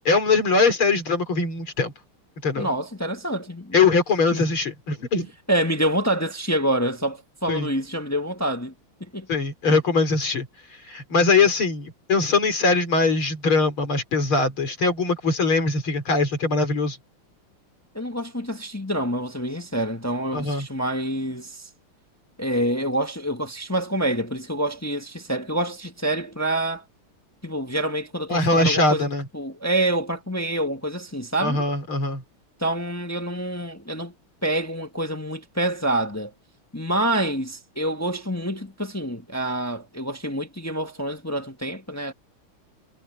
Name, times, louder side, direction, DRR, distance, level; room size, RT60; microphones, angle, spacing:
voice 1, 0.0-1.9 2.4-2.7 3.7-5.3 7.5-7.7 9.3-10.5 10.9-17.0 20.3-20.7 28.3-29.3 31.4-32.2, left 3 dB, 70° left, 4.8 m, -21 dB
voice 2, 2.6-3.8 4.3-4.4 5.5-8.7 9.0-9.3 9.7-9.8 17.9-21.7 22.4-26.8 27.4-29.1 29.3-31.6 32.6-34.1 34.4-36.3 36.7-42.1, right 1 dB, 10° left, 0.8 m, -27 dB
omnidirectional pair, 2.4 m